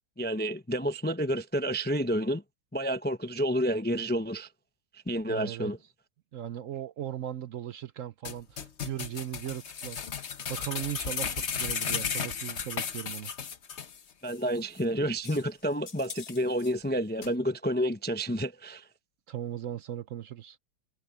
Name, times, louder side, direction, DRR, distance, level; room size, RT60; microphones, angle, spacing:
voice 1, 0.2-2.4 2.7-4.5 5.1-5.8 14.2-18.9, equal, 15° left, 0.4 m, -29 dB
voice 2, 5.3-5.7 6.3-10.0 10.5-13.3 19.3-20.6, right 11 dB, 60° right, 0.9 m, -38 dB
sound 1, 8.3-14.0 14.3-14.4 14.8-14.9 15.2-15.4 15.9-16.7 17.2-17.3, left 7 dB, 45° left, 1.2 m, -35 dB
omnidirectional pair, 1.7 m